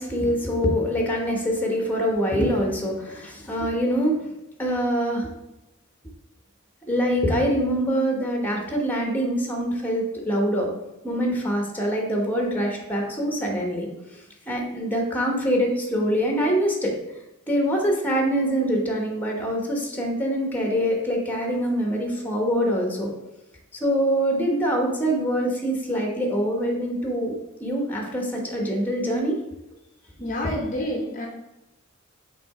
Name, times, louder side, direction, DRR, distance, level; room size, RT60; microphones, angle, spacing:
voice 1, 0.0-4.3 4.6-5.3 6.9-10.7 11.0-13.9 14.1-14.2 14.5-17.0 17.5-23.1 23.7-29.4 30.2-30.3, equal, 10° left, 1 dB, 1.1 m, -24 dB
voice 2, 30.2-31.3, left 1 dB, 40° left, 0 dB, 0.8 m, -28 dB
6.0 x 3.4 x 4.8 m, 0.94 s
head